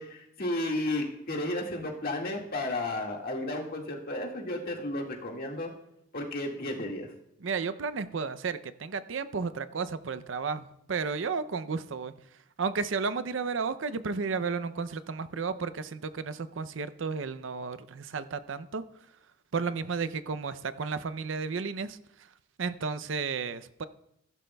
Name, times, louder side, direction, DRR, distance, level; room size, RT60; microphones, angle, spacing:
voice 1, 0.0-5.7 6.1-7.1, left 1 dB, 50° left, 0 dB, 1.9 m, -33 dB
voice 2, 7.4-12.1 12.6-18.8 19.5-22.0 22.6-23.8, right 5 dB, 75° right, 13 dB, 0.6 m, -33 dB
15.5 x 11.5 x 2.3 m, 0.78 s
head